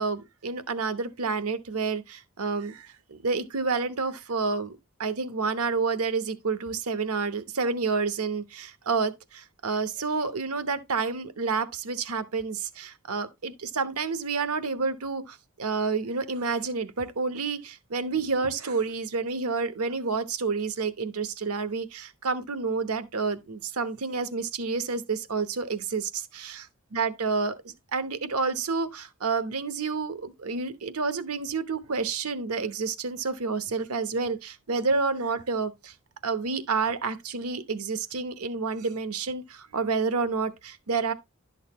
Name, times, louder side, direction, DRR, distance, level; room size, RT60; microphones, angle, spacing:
voice 1, 0.0-26.6 26.9-27.6 27.9-35.9 36.2-41.1, right 4 dB, 80° right, 0.9 m, -29 dB
11.0 x 6.5 x 3.0 m
head